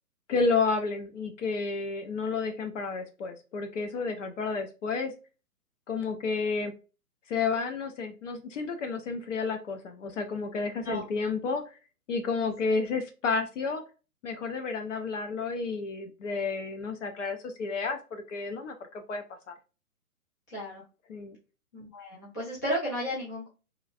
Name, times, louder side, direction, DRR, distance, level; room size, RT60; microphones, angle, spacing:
voice 1, 0.3-5.1 5.9-6.7 7.3-11.8 12.1-13.8 14.2-19.5 21.1-21.4, left 4 dB, 55° left, 6 dB, 0.6 m, -31 dB
voice 2, 12.4-12.7 20.5-20.8 21.7-23.5, equal, 15° left, -8 dB, 0.4 m, -34 dB
3.0 x 2.4 x 2.3 m, 0.32 s
hypercardioid pair, 145°, 45 cm